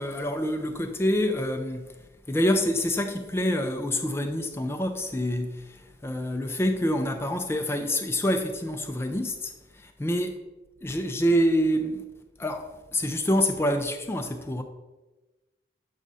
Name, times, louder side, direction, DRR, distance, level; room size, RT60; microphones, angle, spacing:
voice 1, 0.0-2.0 2.3-10.4 10.8-12.0 12.4-14.6, equal, 15° left, 0.3 m, -27 dB
7.3 x 5.0 x 4.0 m
head